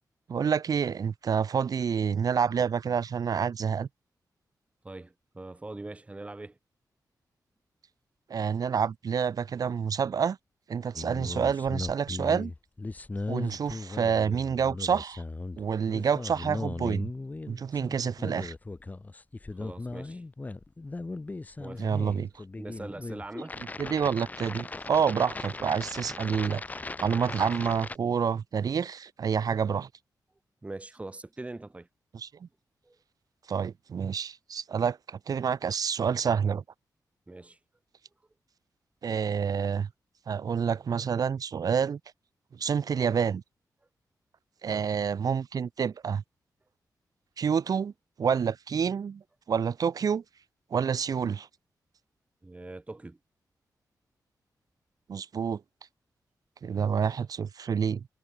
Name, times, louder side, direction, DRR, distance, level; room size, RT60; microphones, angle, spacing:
voice 1, 0.3-3.9 8.3-10.4 10.7-12.5 13.3-15.2 15.6-17.1 17.5-18.5 21.8-22.3 23.8-29.9 32.1-32.5 33.5-36.6 39.0-39.9 40.3-42.0 42.5-43.4 44.6-46.2 47.4-47.9 48.2-49.2 49.5-50.2 50.7-51.5 55.1-55.6 56.6-58.1, right 7 dB, 65° right, 4.2 m, -28 dB
voice 2, 4.8-6.6 19.5-20.2 21.6-21.9 22.6-23.6 30.6-31.9 32.8-33.0 37.3-37.6 44.7-44.9 52.4-53.2, right 2 dB, 20° right, 7.1 m, -42 dB
sound 1, 11.0-28.0, left 3 dB, 25° left, 6.1 m, -38 dB
wide cardioid pair, 140°, 7 cm